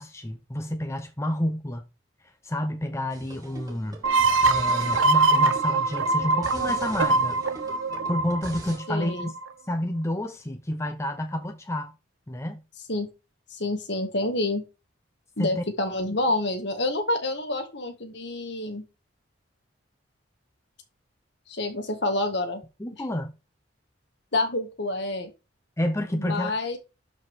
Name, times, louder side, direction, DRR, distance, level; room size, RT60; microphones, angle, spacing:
voice 1, 0.0-1.8 2.4-4.0 4.5-7.4 8.1-9.3 9.7-11.9 12.3-12.6 15.4-15.6 22.8-23.3 25.8-26.5, left 1 dB, 15° left, 0.7 m, -29 dB
sound 1, 3.1-8.8, right 1 dB, 20° right, 2.5 m, -42 dB
sound 2, 4.0-9.5, right 3 dB, 85° right, 0.9 m, -23 dB
voice 2, 8.9-9.3 12.9-13.1 13.5-14.6 15.4-18.8 21.5-22.6 24.3-25.3 26.2-26.8, left 2 dB, 60° left, 2.0 m, -28 dB
12.0 x 5.2 x 3.6 m
head